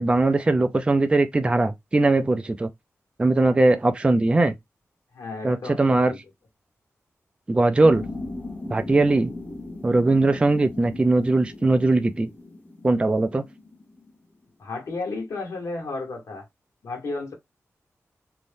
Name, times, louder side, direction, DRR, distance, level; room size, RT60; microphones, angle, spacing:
voice 1, 0.0-2.7 3.2-4.5 5.4-6.1 7.5-8.0 8.7-9.3 9.8-12.3 12.8-13.4, right 2 dB, 20° right, 0.3 m, -20 dB
voice 2, 5.1-6.2 14.6-16.5 16.8-17.3, left 3 dB, 70° left, 1.2 m, -33 dB
sound 1, 7.8-14.1, left 2 dB, 30° left, 0.7 m, -38 dB
2.6 x 2.1 x 3.3 m
wide cardioid pair, 120°, 5 cm